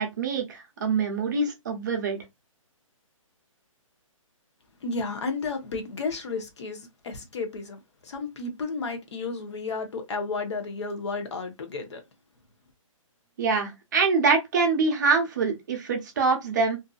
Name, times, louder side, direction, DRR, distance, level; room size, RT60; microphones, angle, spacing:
voice 1, 0.0-2.2 13.4-16.8, right 4 dB, 35° right, 0.7 m, -25 dB
voice 2, 4.8-12.0, left 4 dB, 55° left, 0.9 m, -32 dB
2.7 x 2.5 x 2.3 m
hypercardioid pair, 165°, 18 cm